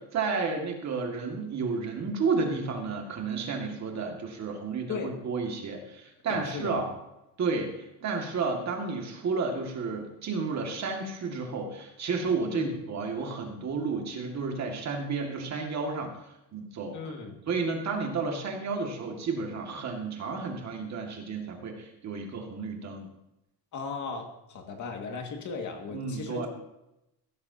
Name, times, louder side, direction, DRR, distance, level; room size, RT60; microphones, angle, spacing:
voice 1, 0.0-6.9 7.4-16.2 16.5-17.0 17.5-23.1 25.9-26.5, right 4 dB, 40° right, 2 dB, 2.1 m, -32 dB
voice 2, 6.3-6.8 12.5-12.8 16.9-17.3 23.7-26.5, left 4 dB, 45° left, 3 dB, 2.0 m, -36 dB
15.5 x 13.0 x 2.8 m, 0.88 s
cardioid pair, 150°, 43 cm